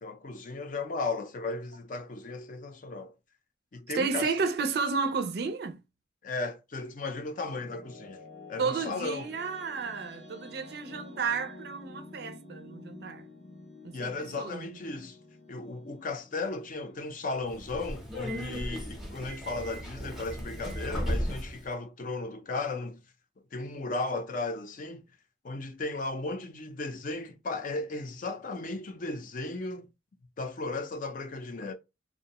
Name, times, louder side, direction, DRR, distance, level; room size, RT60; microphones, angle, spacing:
voice 1, 0.0-3.1 3.7-4.3 6.2-8.2 8.5-9.3 13.9-15.2 15.5-23.0 23.4-25.0 25.4-29.9 30.4-31.7, left 3 dB, 50° left, 0.5 m, -35 dB
voice 2, 3.9-5.8 8.6-13.2 13.8-14.6, right 5 dB, 60° right, 0.4 m, -32 dB
sound 1, 7.3-17.9, left 2 dB, 80° left, 0.8 m, -50 dB
Subway metro underground, 17.4-21.7, equal, ahead, 0.7 m, -35 dB
2.6 x 2.1 x 2.8 m
head